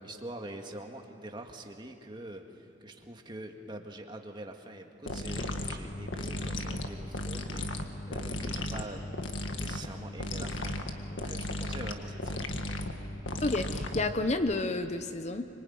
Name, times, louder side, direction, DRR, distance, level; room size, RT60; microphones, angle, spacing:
voice 1, 0.0-9.2 9.5-12.5, right 1 dB, 25° right, 3 dB, 1.9 m, -45 dB
sound 1, 5.1-14.3, left 1 dB, 90° left, 1.8 m, -35 dB
voice 2, 13.4-15.5, left 2 dB, 35° left, 9 dB, 0.9 m, -30 dB
25.0 x 24.0 x 9.4 m, 2.7 s
head